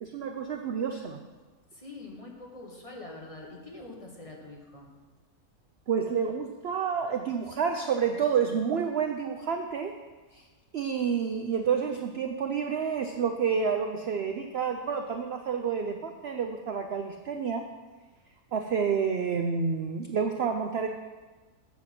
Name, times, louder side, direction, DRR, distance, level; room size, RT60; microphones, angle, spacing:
voice 1, 0.0-1.2 5.9-9.9 10.3-10.4 10.7-17.7 18.5-20.9, right 6 dB, 60° right, 5 dB, 0.7 m, -29 dB
voice 2, 1.7-4.9, left 2 dB, 25° left, -1 dB, 1.2 m, -44 dB
7.8 x 7.3 x 5.8 m, 1.3 s
omnidirectional pair, 1.6 m